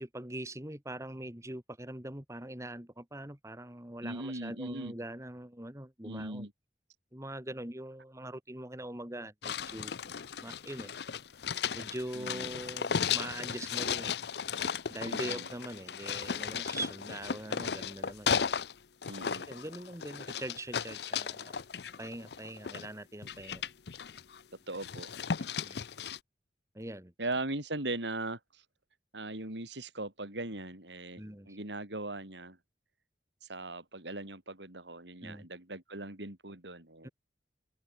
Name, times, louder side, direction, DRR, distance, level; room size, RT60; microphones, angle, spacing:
voice 1, 0.0-6.5 7.1-9.9 10.4-10.9 11.7-14.1 14.9-18.4 19.5-21.5 22.0-23.6 25.6-25.8 26.7-27.1 31.2-31.6 35.2-35.5 37.0-37.1, right 1 dB, 15° right, 2.7 m, -42 dB
voice 2, 4.0-4.9 6.0-6.5 12.1-12.5 15.0-15.5 19.1-19.5 24.7-25.1 27.2-28.6 29.1-32.6 33.5-37.1, right 2 dB, 80° right, 5.0 m, -39 dB
sound 1, 9.4-18.7 19.0-22.9 23.2-24.4 24.7-26.2, left 7 dB, 65° left, 0.7 m, -35 dB
open air
head